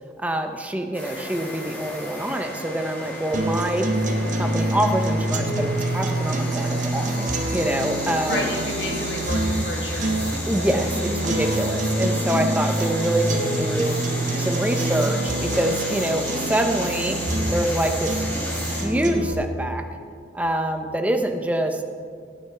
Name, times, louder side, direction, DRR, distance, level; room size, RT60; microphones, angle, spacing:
voice 1, 0.2-3.9 4.3-8.5 10.5-14.0 14.4-17.2 17.5-18.2 18.6-19.8 20.3-21.8, right 1 dB, 10° right, 5 dB, 0.7 m, -25 dB
sound 1, 0.9-18.8, equal, 10° left, 3.5 m, -33 dB
sound 2, 3.3-19.3, right 1 dB, 45° right, 1.1 m, -26 dB
voice 2, 8.3-10.3, left 2 dB, 65° left, 0 dB, 2.1 m, -30 dB
18.0 x 9.7 x 3.4 m, 2.2 s
head